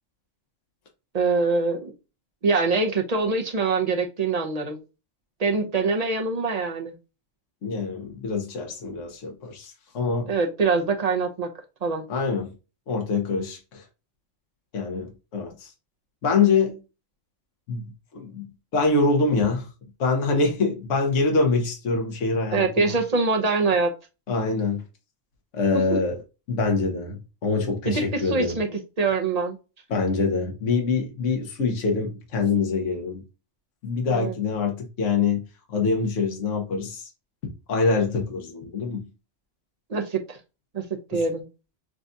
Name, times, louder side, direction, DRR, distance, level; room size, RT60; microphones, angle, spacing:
voice 1, 1.1-1.9 2.4-4.8 5.4-6.9 10.3-11.5 11.8-12.1 22.5-23.9 27.8-28.7 29.0-29.6 34.1-34.3 39.9-40.4 40.7-40.8 41.1-41.4, right 4 dB, 40° right, 0.6 m, -24 dB
voice 2, 7.6-10.3 12.1-12.5 12.9-13.8 14.7-15.7 16.2-16.8 17.7-18.5 18.7-19.7 20.0-22.9 24.3-24.8 25.5-26.2 26.5-28.6 29.9-33.2 33.8-37.1 37.4-39.0 41.1-41.2, left 4 dB, 70° left, 1.3 m, -25 dB
6.2 x 2.4 x 2.6 m
omnidirectional pair, 1.3 m